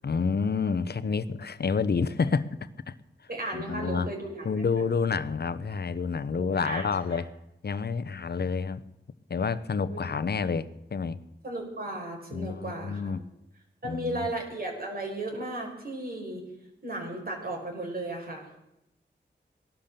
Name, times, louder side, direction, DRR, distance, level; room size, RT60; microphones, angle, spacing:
voice 1, 0.0-2.9 3.5-4.1 4.4-7.3 7.6-8.8 9.3-11.2 12.3-13.2 13.8-14.2, left 5 dB, 60° left, 14 dB, 0.9 m, -29 dB
voice 2, 3.3-4.5 6.3-7.2 9.9-10.0 11.4-13.2 13.8-16.4 16.8-18.5, right 1 dB, 55° right, 0 dB, 5.3 m, -35 dB
17.5 x 12.0 x 6.9 m, 0.85 s
cardioid pair, 55°, 19 cm